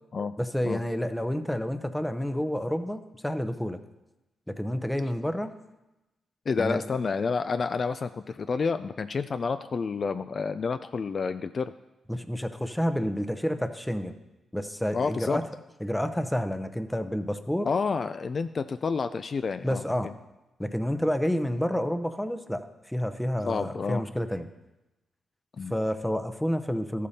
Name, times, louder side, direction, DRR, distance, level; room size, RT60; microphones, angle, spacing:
voice 1, 0.4-3.8 4.5-5.5 6.6-6.8 12.1-14.2 14.5-15.4 15.8-17.7 19.6-20.1 20.6-24.5 25.7-27.1, equal, 5° left, 9 dB, 0.7 m, -29 dB
voice 2, 6.5-11.7 14.9-15.4 17.6-20.1 23.5-24.1 25.6-25.7, left 5 dB, 45° left, 10 dB, 0.3 m, -29 dB
13.0 x 8.4 x 2.8 m, 0.99 s
cardioid pair, 80°, 0 cm